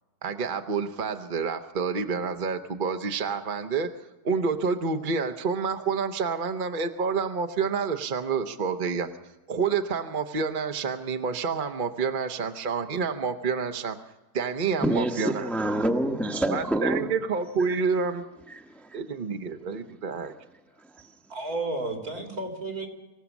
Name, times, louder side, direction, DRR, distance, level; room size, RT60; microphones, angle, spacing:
voice 1, 0.2-3.9 4.2-9.1 9.5-14.0 14.3-15.5 16.5-18.2 18.9-20.3, right 5 dB, 40° right, 0.9 m, -28 dB
voice 2, 14.8-17.1 18.5-19.0, right 1 dB, ahead, 1.0 m, -27 dB
voice 3, 21.3-22.9, right 2 dB, 75° right, 3.5 m, -32 dB
25.0 x 15.5 x 7.2 m
omnidirectional pair, 1.6 m